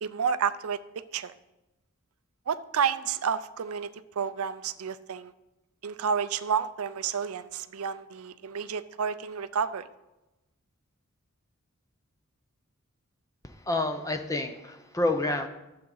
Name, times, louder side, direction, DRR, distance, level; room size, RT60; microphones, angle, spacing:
voice 1, 0.0-0.8 1.1-1.3 2.5-5.3 5.8-9.9, right 7 dB, 85° right, 13 dB, 0.5 m, -30 dB
voice 2, 13.4-15.5, left 2 dB, 15° left, 7 dB, 0.6 m, -29 dB
12.0 x 7.6 x 3.9 m, 0.98 s
head